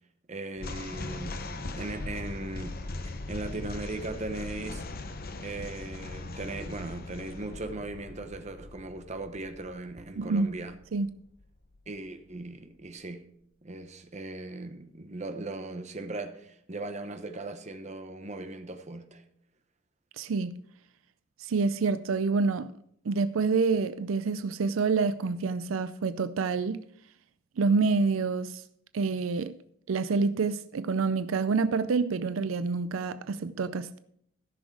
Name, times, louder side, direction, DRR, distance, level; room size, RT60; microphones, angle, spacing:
voice 1, 0.3-4.8 5.4-10.8 11.9-13.3 13.6-19.2, right 2 dB, 35° right, 0.9 m, -38 dB
sound 1, 0.6-11.9, left 2 dB, 50° left, 0.9 m, -40 dB
voice 2, 10.2-10.5 10.9-11.1 20.2-20.5 21.4-22.7 23.1-26.8 27.6-28.6 28.9-29.5 29.9-34.0, right 4 dB, 85° right, 0.5 m, -27 dB
14.5 x 6.3 x 4.6 m
head